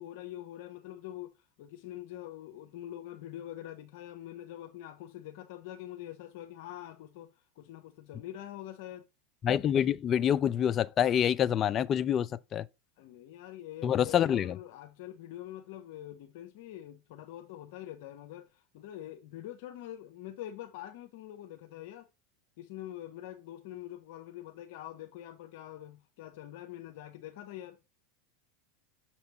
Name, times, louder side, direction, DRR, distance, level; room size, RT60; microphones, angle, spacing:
voice 1, 0.0-9.0 13.0-22.1 22.6-27.8, left 13 dB, 65° left, 0.7 m, -45 dB
voice 2, 9.4-12.7 13.8-14.6, left 9 dB, 35° left, 0.4 m, -27 dB
6.7 x 2.9 x 5.4 m
hypercardioid pair, 100°, 0 cm